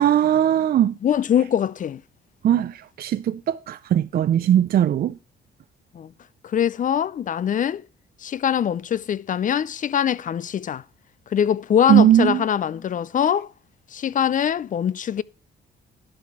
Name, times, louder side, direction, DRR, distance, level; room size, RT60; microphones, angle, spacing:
voice 1, 0.0-0.9 2.4-5.1 11.9-12.4, right 11 dB, 50° right, 0.4 m, -19 dB
voice 2, 1.0-2.0 5.9-6.1 6.4-7.8 8.2-10.8 11.3-13.5 13.9-15.2, left 9 dB, 40° left, 0.4 m, -23 dB
11.5 x 5.8 x 4.7 m
cardioid pair, 90°, 20 cm